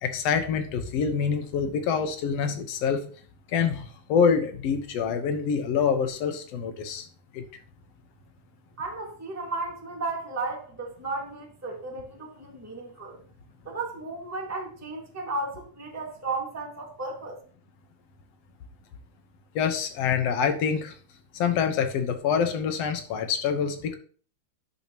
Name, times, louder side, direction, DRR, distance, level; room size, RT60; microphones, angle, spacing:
voice 1, 0.0-3.0 3.5-7.1 7.3-7.4 19.6-20.9 21.4-24.0, left 6 dB, 65° left, 2.0 m, -26 dB
voice 2, 8.8-13.2 13.6-17.4, right 3 dB, 5° right, 1.3 m, -34 dB
10.5 x 7.1 x 3.0 m
omnidirectional pair, 3.5 m